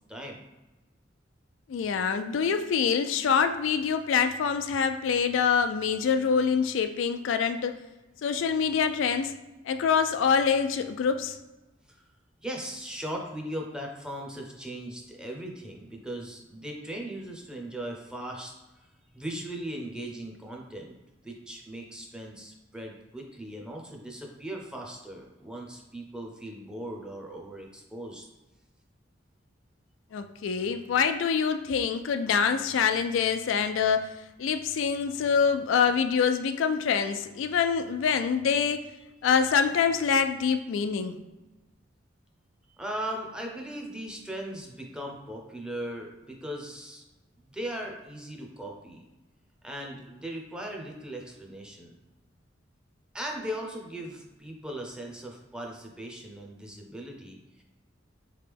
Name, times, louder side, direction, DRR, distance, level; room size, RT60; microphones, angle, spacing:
voice 1, 1.7-7.7 8.2-9.3 9.7-11.4 30.1-34.1 34.4-38.8 39.2-41.1, left 6 dB, 80° left, 8 dB, 0.3 m, -25 dB
voice 2, 12.4-18.9 19.1-20.9 21.2-28.3 42.8-47.0 47.5-49.1 49.6-51.9 53.1-57.6, right 1 dB, 5° right, 0 dB, 0.6 m, -38 dB
3.7 x 3.3 x 3.4 m, 1.1 s
head